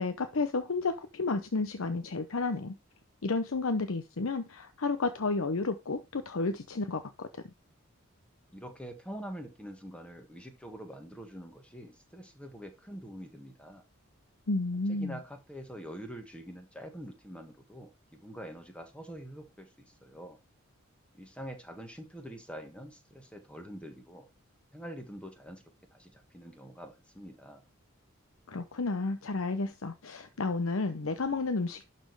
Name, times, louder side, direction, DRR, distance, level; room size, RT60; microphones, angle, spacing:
voice 1, 0.0-2.7 3.2-7.3 14.5-15.2 28.5-31.8, left 3 dB, 75° left, 0.8 m, -31 dB
voice 2, 8.5-13.8 14.9-20.4 21.1-24.3 24.7-25.6 25.9-27.6, equal, 5° left, 1.5 m, -45 dB
11.5 x 4.3 x 4.7 m
head